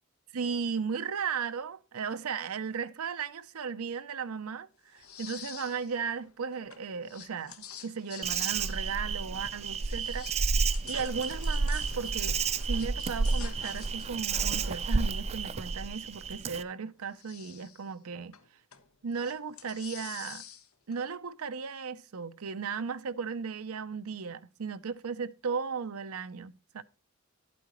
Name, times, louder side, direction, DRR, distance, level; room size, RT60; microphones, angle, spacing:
voice 1, 0.3-10.5 10.8-12.4 12.7-18.4 19.0-20.4 20.9-26.8, right 6 dB, 85° right, 0.6 m, -36 dB
sound 1, 4.9-6.0 6.2-9.5 9.8-16.3 16.9-17.9 18.3-18.9 19.1-21.0, left 8 dB, 80° left, 1.1 m, -48 dB
Insect, 8.2-16.6, right 4 dB, 30° right, 0.5 m, -31 dB
11.5 x 8.5 x 3.0 m
head